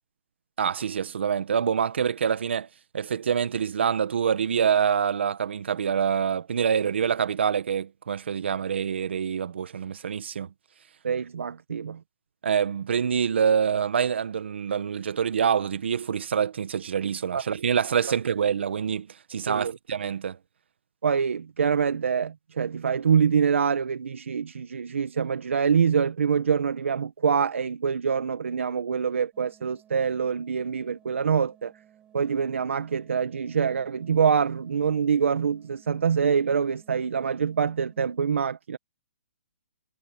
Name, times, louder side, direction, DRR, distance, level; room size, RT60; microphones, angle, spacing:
voice 1, 0.6-2.7 2.9-10.5 12.4-20.4, right 7 dB, 60° right, 1.5 m, -26 dB
voice 2, 11.0-12.0 17.3-17.4 19.5-19.8 21.0-31.7 32.1-38.8, right 6 dB, 80° right, 1.3 m, -25 dB
sound 1, 29.3-38.2, right 10 dB, 10° right, 4.8 m, -58 dB
hypercardioid pair, 170°, 7 cm